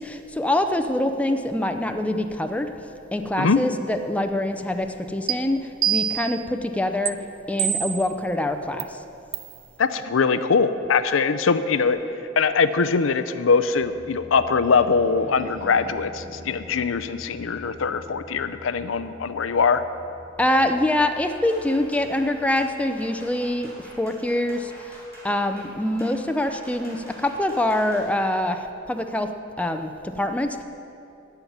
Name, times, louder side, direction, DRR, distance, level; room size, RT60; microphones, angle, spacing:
voice 1, 0.0-2.7 3.1-7.2 7.5-9.0 20.4-25.0 25.2-30.6, left 1 dB, 5° left, 6 dB, 0.5 m, -25 dB
sound 1, 5.3-5.4 5.8-6.4 7.1-7.2 7.6-8.1 8.8-8.9 9.3-9.5, right 10 dB, 90° right, 0.5 m, -25 dB
voice 2, 9.8-12.0 12.4-19.8, left 5 dB, 80° left, 12 dB, 0.5 m, -22 dB
sound 2, 13.7-23.8, equal, 40° right, 3.5 m, -45 dB
sound 3, 21.3-28.1, equal, 15° right, 3.5 m, -47 dB
14.0 x 5.8 x 9.3 m, 2.8 s
head